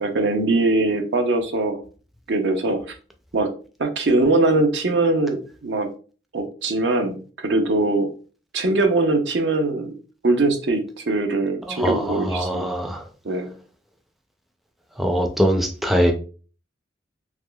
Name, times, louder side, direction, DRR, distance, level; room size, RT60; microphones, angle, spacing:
voice 1, 0.0-1.8 2.3-2.9 3.3-3.5 3.8-5.9 6.3-8.1 8.5-10.0 10.2-12.9 13.2-13.5, right 2 dB, 70° right, 0.6 m, -21 dB
voice 2, 11.8-13.0 15.0-16.1, equal, ahead, 0.3 m, -22 dB
3.5 x 2.9 x 2.2 m
head